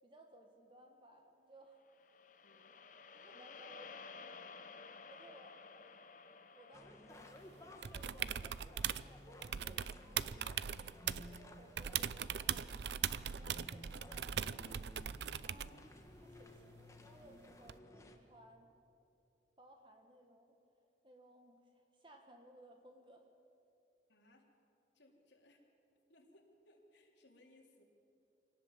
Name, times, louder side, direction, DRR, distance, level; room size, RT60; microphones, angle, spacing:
voice 1, 0.0-1.8 3.1-4.6 5.1-5.6 6.5-7.3 8.2-12.7 13.1-14.8 15.3-15.8 16.2-18.7 19.6-20.6 21.0-23.3, right 1 dB, 25° right, 3 dB, 1.6 m, -62 dB
sound 1, 1.9-10.2, left 4 dB, 45° left, 1.0 m, -55 dB
voice 2, 2.4-2.8 3.5-3.7 15.5-15.9 24.1-24.5 24.9-25.6 26.1-27.8, left 1 dB, 80° left, 0 dB, 3.6 m, -66 dB
sound 2, 6.7-18.2, left 1 dB, 15° left, 1.5 m, -57 dB
sound 3, 7.8-9.1 9.4-11.4 11.8-15.8 17.7-17.8, right 9 dB, 70° right, 0.5 m, -40 dB
25.0 x 18.5 x 7.5 m, 2.8 s
head